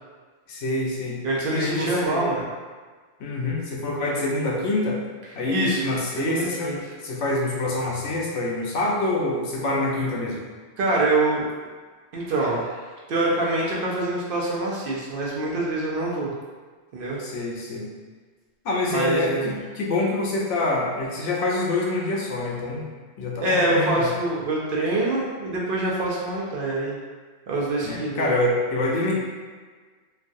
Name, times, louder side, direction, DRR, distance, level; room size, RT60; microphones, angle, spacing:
voice 1, 0.5-1.2 1.5-2.2 3.2-5.0 5.3-10.4 17.2-17.9 18.6-22.9 23.2-24.1 27.8-29.1, left 2 dB, 90° left, -2 dB, 1.0 m, -26 dB
voice 2, 1.2-2.5 5.5-5.9 6.2-6.8 10.8-11.5 12.1-16.3 16.9-17.2 18.9-19.5 23.4-27.0 27.5-28.3, right 2 dB, 60° right, -4 dB, 0.6 m, -25 dB
3.1 x 2.4 x 2.6 m, 1.5 s
omnidirectional pair, 1.2 m